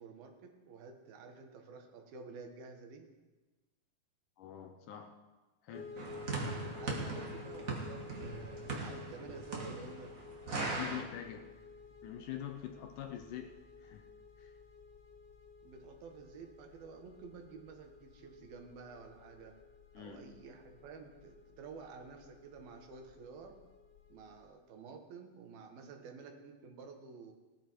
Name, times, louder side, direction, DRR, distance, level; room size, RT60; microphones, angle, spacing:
voice 1, 0.0-3.1 6.8-10.1 15.6-19.5 20.0-23.6 24.1-27.3, right 5 dB, 80° right, 4 dB, 3.3 m, -51 dB
voice 2, 4.4-5.2 5.6-5.9 10.7-11.5 12.0-14.1 14.4-14.5 20.0-20.3, left 10 dB, 75° left, 6 dB, 2.0 m, -45 dB
sound 1, 5.7-24.5, left 4 dB, 30° left, 2.1 m, -53 dB
sound 2, 6.0-11.0, right 3 dB, 40° right, 1.1 m, -40 dB
18.5 x 11.5 x 4.6 m, 1.2 s
omnidirectional pair, 4.3 m